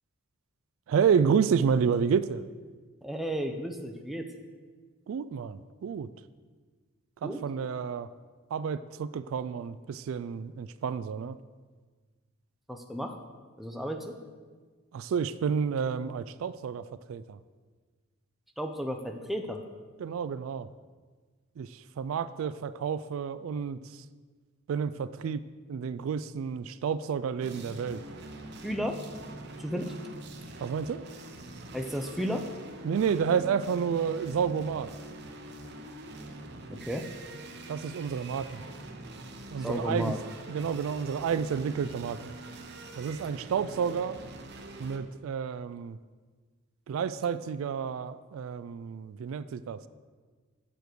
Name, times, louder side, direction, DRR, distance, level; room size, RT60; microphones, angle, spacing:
voice 1, 0.9-2.4 5.1-6.1 7.2-8.1 8.5-11.4 14.9-17.4 20.0-20.7 21.6-24.0 24.7-25.4 25.7-28.0 30.6-31.0 32.8-34.9 37.7-38.6 39.5-40.2 40.5-42.3 43.0-44.2 44.8-46.0 46.9-49.8, right 6 dB, 75° right, 14 dB, 0.3 m, -30 dB
voice 2, 3.0-4.3 7.2-7.4 12.7-13.2 13.6-14.2 18.6-19.6 28.6-29.0 29.6-29.9 31.7-32.5 36.7-37.1 39.6-40.2, equal, ahead, 3 dB, 0.6 m, -33 dB
sound 1, 27.4-45.0, right 2 dB, 50° right, 0.7 m, -44 dB
7.1 x 6.0 x 6.6 m, 1.5 s
head